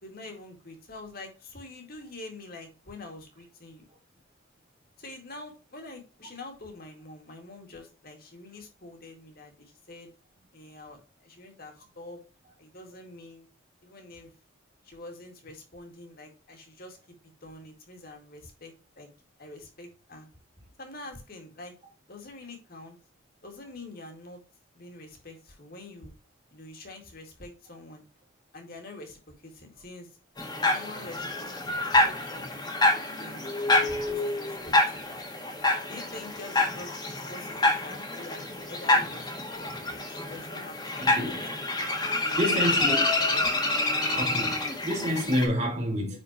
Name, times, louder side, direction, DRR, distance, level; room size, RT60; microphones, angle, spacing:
voice 1, 0.0-3.9 5.0-10.1 10.5-12.2 12.6-13.5 13.8-14.3 14.8-17.0 17.4-19.1 19.4-20.3 20.8-21.8 22.1-23.0 23.4-24.4 24.7-26.1 26.5-28.0 28.5-30.1 30.6-31.5 31.8-32.7 33.2-33.5 33.8-35.2 35.9-39.5 39.9-41.7 42.2-42.7 43.2-43.5 43.9-44.1 46.1-46.2, left 2 dB, 45° left, 2.1 m, -45 dB
sound 1, 30.4-45.5, left 2 dB, 20° left, 1.5 m, -27 dB
voice 2, 41.0-41.5 42.4-43.0 43.4-43.5 44.1-46.2, equal, 35° right, 3.1 m, -29 dB
9.8 x 4.4 x 2.9 m
head